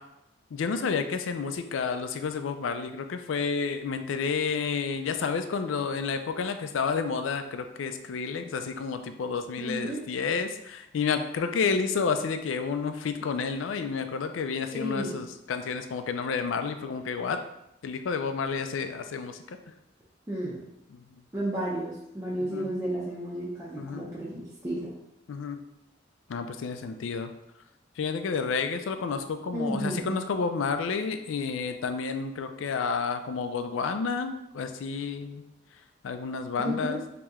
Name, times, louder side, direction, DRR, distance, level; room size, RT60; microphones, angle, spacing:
voice 1, 0.5-17.4 17.8-19.6 20.9-21.0 22.4-22.7 23.8-24.0 25.3-25.6 26.3-27.3 28.0-35.4 36.0-37.0, left 5 dB, 85° left, 8 dB, 0.4 m, -30 dB
voice 2, 9.6-10.0 14.7-15.2 20.3-20.6 21.3-24.9 29.5-30.2 36.6-37.0, right 1 dB, 15° right, -8 dB, 0.6 m, -32 dB
3.1 x 2.9 x 3.5 m, 0.84 s
head